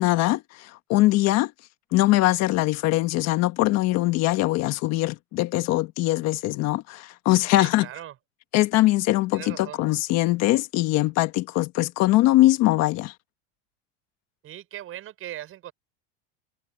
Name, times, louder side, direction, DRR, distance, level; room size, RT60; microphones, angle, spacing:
voice 1, 0.0-1.5 1.9-7.9 8.5-13.1, left 17 dB, 45° left, 1.5 m, -22 dB
voice 2, 7.5-8.1 9.3-9.8 14.4-15.7, right 12 dB, 35° right, 6.2 m, -39 dB
supercardioid pair, 140°, 36 cm